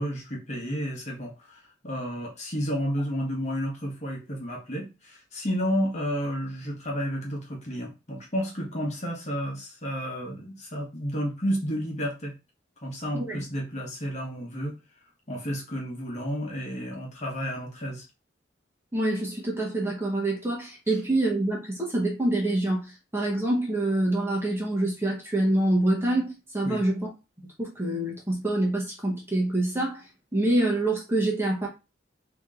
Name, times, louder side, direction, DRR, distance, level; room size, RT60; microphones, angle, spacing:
voice 1, 0.0-12.3 12.8-14.8 15.3-18.0 26.6-26.8, equal, 35° left, 1.3 m, -31 dB
voice 2, 18.9-27.1 27.6-31.7, right 1 dB, 15° right, 1.1 m, -26 dB
3.6 x 3.0 x 3.7 m
head